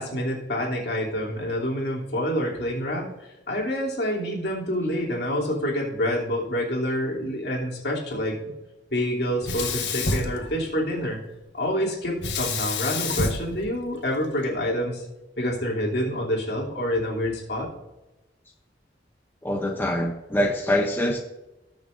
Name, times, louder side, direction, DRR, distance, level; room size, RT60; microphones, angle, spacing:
voice 1, 0.0-8.5 8.9-11.2 11.5-15.0 15.4-17.7, equal, 65° left, -3 dB, 3.1 m, -27 dB
Sink (filling or washing), 9.4-11.1 12.2-14.5, left 3 dB, 85° left, 1.4 m, -29 dB
voice 2, 19.4-21.2, left 1 dB, 10° left, 2 dB, 0.7 m, -24 dB
19.5 x 6.6 x 2.6 m, 0.99 s
head